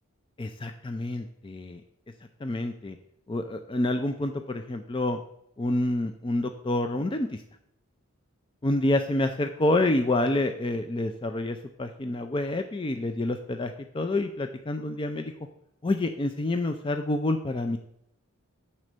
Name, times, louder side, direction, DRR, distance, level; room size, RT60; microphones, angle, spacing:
voice 1, 0.4-1.8 2.4-3.0 3.3-5.2 5.6-7.3 8.6-15.3 15.8-17.8, left 2 dB, 25° left, 6 dB, 0.4 m, -28 dB
8.0 x 4.3 x 6.1 m, 0.75 s
head